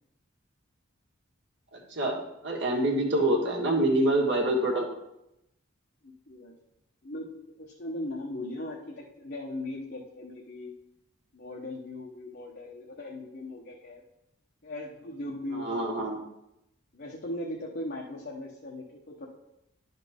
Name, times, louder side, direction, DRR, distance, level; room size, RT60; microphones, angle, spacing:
voice 1, 2.4-4.9 15.5-16.2, right 1 dB, 60° right, -1 dB, 1.6 m, -26 dB
voice 2, 6.0-6.5 7.0-10.7 11.3-14.0 14.6-15.8 16.9-19.3, left 1 dB, 50° left, -3 dB, 0.9 m, -39 dB
11.0 x 4.1 x 3.6 m, 0.86 s
head